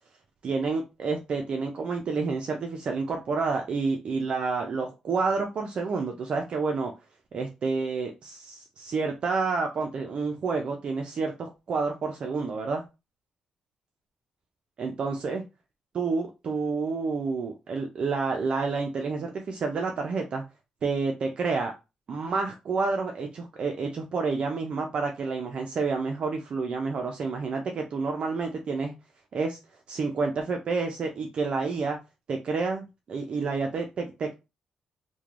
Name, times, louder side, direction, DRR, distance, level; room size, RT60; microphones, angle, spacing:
voice 1, 0.4-6.9 7.3-12.8 14.8-15.4 15.9-20.4 20.8-21.7 22.1-28.9 29.3-29.6 29.9-32.0 32.3-34.3, right 4 dB, 50° right, 3 dB, 0.4 m, -29 dB
3.0 x 2.2 x 2.4 m, 0.26 s
cardioid pair, 95°, 2 cm